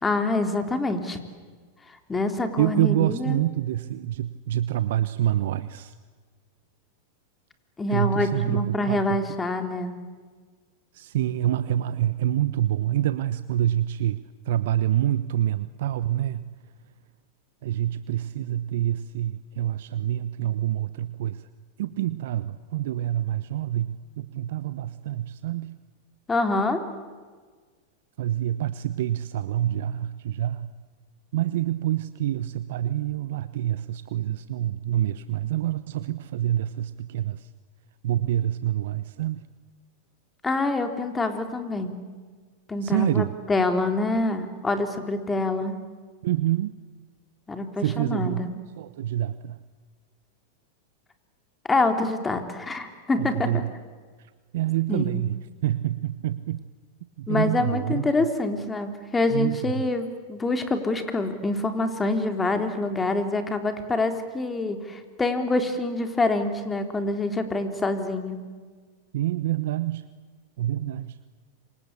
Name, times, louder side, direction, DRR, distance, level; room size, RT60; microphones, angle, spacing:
voice 1, 0.0-1.2 2.1-3.4 7.8-10.0 26.3-26.8 40.4-42.0 42.7-45.8 47.5-48.5 51.7-53.6 54.9-55.2 57.3-68.4, left 2 dB, 15° left, 7 dB, 3.8 m, -26 dB
voice 2, 2.6-5.9 7.9-9.2 10.9-16.5 17.6-21.5 21.8-25.8 28.2-30.7 31.3-37.5 38.0-39.5 42.8-43.3 46.2-46.8 47.8-48.5 48.8-49.6 53.2-53.7 54.5-56.6 57.2-58.1 59.3-59.7 69.1-70.1 70.6-71.2, right 12 dB, 65° right, 14 dB, 1.0 m, -27 dB
28.0 x 25.5 x 8.4 m, 1.5 s
hypercardioid pair, 100°, 0 cm